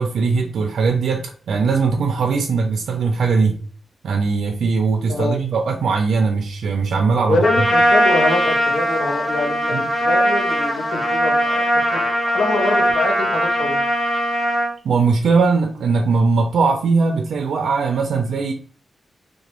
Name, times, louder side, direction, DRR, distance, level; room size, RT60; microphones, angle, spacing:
voice 1, 0.0-3.6 4.0-7.7 9.7-9.8 14.8-18.5, right 4 dB, 80° right, 2 dB, 0.4 m, -20 dB
voice 2, 5.1-5.4 7.3-13.8, left 3 dB, 90° left, 1 dB, 0.7 m, -24 dB
Trumpet, 7.4-14.7, equal, 25° left, 0.9 m, -19 dB
2.9 x 2.2 x 2.9 m, 0.42 s
wide cardioid pair, 140°, 0 cm